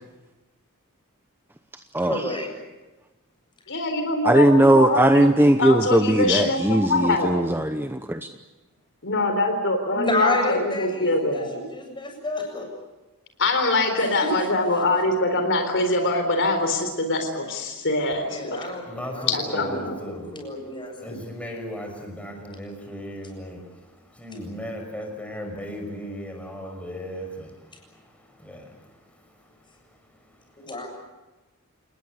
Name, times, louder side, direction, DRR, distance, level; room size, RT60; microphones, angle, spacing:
voice 1, 2.0-2.5 9.9-12.7 14.2-14.3 18.2-21.2 30.6-30.9, left 2 dB, 20° left, 2 dB, 7.6 m, -30 dB
voice 2, 3.7-7.3 9.0-11.5 13.4-18.6 19.3-19.9, left 2 dB, 60° left, 6 dB, 4.0 m, -24 dB
voice 3, 4.2-8.3, right 1 dB, 10° right, 7 dB, 0.9 m, -19 dB
voice 4, 18.9-20.3 21.0-30.2 30.5-30.6, equal, 5° left, 3 dB, 5.9 m, -37 dB
28.5 x 20.0 x 8.2 m, 1.2 s
head